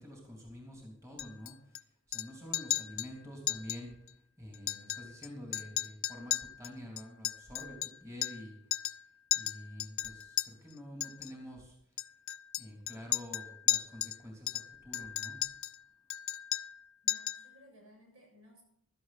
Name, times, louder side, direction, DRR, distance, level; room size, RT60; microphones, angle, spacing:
voice 1, 0.0-4.0 4.4-8.5 9.3-11.8 12.6-15.4, equal, 15° right, -1 dB, 3.3 m, -48 dB
Chink clink, 1.2-1.8 2.1-2.3 2.5-3.1 3.5-3.8 4.1-4.2 4.5-5.3 5.5-8.5 8.7-9.0 9.3-10.5 11.0-11.3 12.0-14.2 14.5-15.8 16.1-16.8 17.1-17.5, left 14 dB, 70° left, 0.5 m, -35 dB
voice 2, 17.0-18.6, left 1 dB, 75° right, 0 dB, 7.1 m, -59 dB
16.0 x 13.0 x 4.3 m, 0.72 s
head